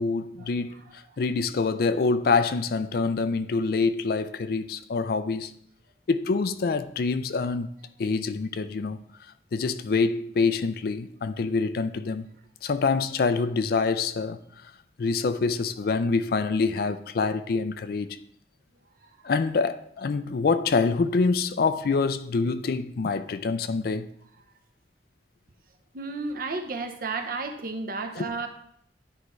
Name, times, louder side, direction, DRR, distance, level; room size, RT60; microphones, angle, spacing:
voice 1, 0.0-5.6 6.1-7.7 8.0-9.0 9.5-12.3 12.6-14.7 15.0-18.2 19.2-24.1 28.2-28.3, left 4 dB, 55° left, 0.4 m, -26 dB
voice 2, 25.9-28.5, right 3 dB, 55° right, 0.8 m, -32 dB
10.5 x 4.7 x 3.1 m
head